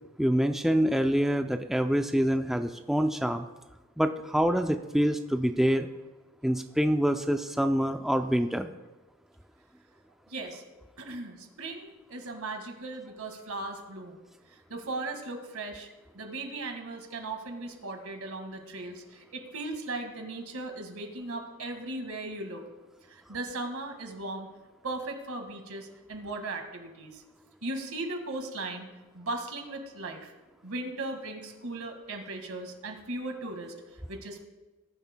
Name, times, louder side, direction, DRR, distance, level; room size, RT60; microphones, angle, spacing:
voice 1, 0.2-3.5 4.0-5.9 6.4-8.7, equal, ahead, 6 dB, 0.3 m, -26 dB
voice 2, 10.3-10.6 11.0-14.2 14.7-15.9 16.1-22.6 23.1-24.5 24.8-27.2 27.6-28.9 29.1-30.3 30.6-33.7 34.1-34.5, right 2 dB, 85° right, 4 dB, 1.8 m, -37 dB
19.5 x 10.5 x 2.2 m, 1.2 s
head